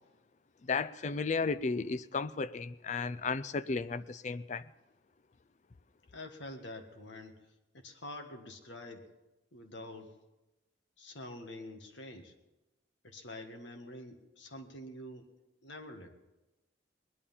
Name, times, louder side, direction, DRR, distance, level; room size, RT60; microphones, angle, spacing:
voice 1, 0.6-4.7, left 4 dB, 40° left, 0.4 m, -34 dB
voice 2, 6.1-9.1 9.5-10.2 11.0-12.3 13.0-15.3 15.6-16.2, left 1 dB, 85° left, 1.8 m, -47 dB
20.0 x 11.0 x 5.6 m
head